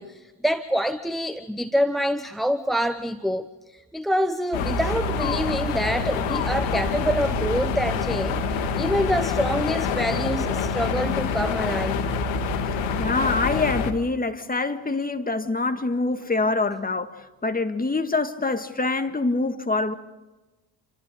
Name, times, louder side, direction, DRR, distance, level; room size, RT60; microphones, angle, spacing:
voice 1, 0.0-3.5 3.7-11.9, equal, ahead, 0.9 m, -26 dB
sound 1, 4.5-13.9, left 5 dB, 65° left, 2.2 m, -26 dB
voice 2, 13.0-19.9, left 3 dB, 15° left, 2.0 m, -25 dB
28.5 x 26.0 x 3.9 m
hypercardioid pair, 55°, 50 cm